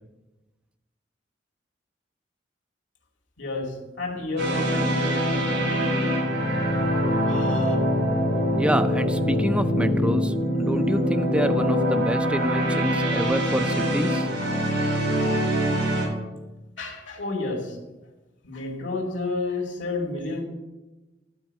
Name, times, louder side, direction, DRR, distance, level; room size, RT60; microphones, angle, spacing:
voice 1, 3.4-5.8 7.1-7.7 16.8-17.8 18.4-20.4, left 3 dB, 85° left, 0 dB, 2.2 m, -31 dB
sound 1, 4.4-16.1, equal, 80° right, 4.0 m, -24 dB
voice 2, 8.6-14.3, equal, 5° right, 8 dB, 0.4 m, -27 dB
12.0 x 4.5 x 7.4 m, 1.1 s
head